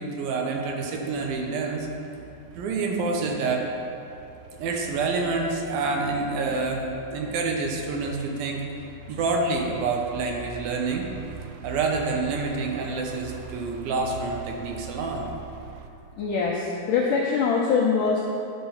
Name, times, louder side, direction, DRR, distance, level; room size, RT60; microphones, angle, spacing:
voice 1, 0.0-1.9 2.6-3.7 4.6-6.8 7.1-8.6 9.1-11.1 11.6-15.3, right 3 dB, 70° right, 1 dB, 2.4 m, -27 dB
sound 1, 1.1-15.9, right 6 dB, 85° right, 2.1 m, -44 dB
voice 2, 16.2-18.2, left 5 dB, 80° left, -3 dB, 1.8 m, -23 dB
10.5 x 6.1 x 5.6 m, 2.7 s
omnidirectional pair, 4.8 m